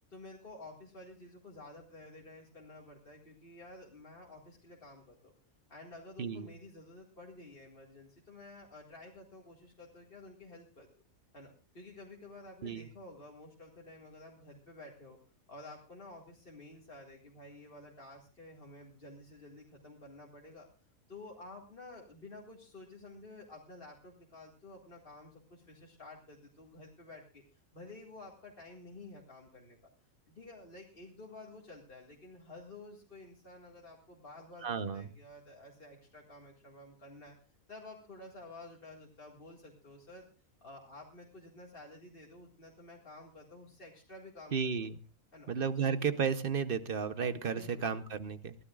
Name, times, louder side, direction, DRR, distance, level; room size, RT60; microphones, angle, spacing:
voice 1, 0.1-5.3 5.7-10.9 11.3-15.2 15.5-20.7 21.1-29.8 30.3-40.3 40.6-44.9 45.3-45.5 45.8-45.9 47.4-48.2, left 2 dB, 40° left, -1 dB, 2.1 m, -52 dB
voice 2, 34.6-35.1 44.5-44.9 45.5-48.6, right 6 dB, 45° right, 12 dB, 1.0 m, -33 dB
23.5 x 15.5 x 2.4 m, 0.35 s
omnidirectional pair, 1.5 m